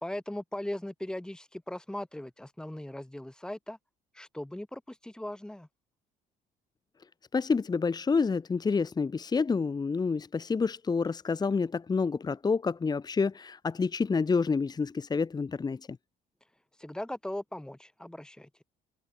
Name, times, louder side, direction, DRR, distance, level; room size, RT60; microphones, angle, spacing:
voice 1, 0.0-3.8 4.1-5.7 16.8-18.5, left 1 dB, 5° left, 2.8 m, -39 dB
voice 2, 7.3-16.0, left 4 dB, 25° left, 1.4 m, -28 dB
cardioid pair, 110°, 17 cm